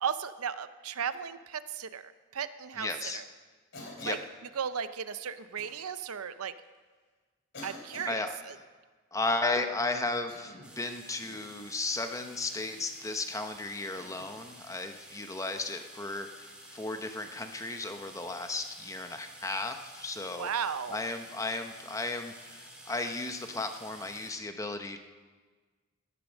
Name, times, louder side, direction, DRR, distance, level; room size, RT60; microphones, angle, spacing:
voice 1, 0.0-3.2 4.0-4.2 4.6-6.6 7.6-8.5 20.4-21.0, right 7 dB, 85° right, 13 dB, 0.7 m, -35 dB
voice 2, 2.7-3.2 4.0-4.2 8.1-8.4 9.1-25.0, left 2 dB, 15° left, 6 dB, 0.9 m, -35 dB
Cough, 3.7-4.3 5.6-5.8 6.6-6.7 7.5-8.2 10.1-10.8 11.2-11.5 12.6-12.9 13.9-14.3 15.8-16.1 18.3-18.4 20.1-20.3, left 2 dB, 55° left, 3.6 m, -48 dB
sound 1, 10.6-24.3, right 1 dB, 5° right, 2.2 m, -51 dB
17.0 x 10.5 x 6.4 m, 1.4 s
head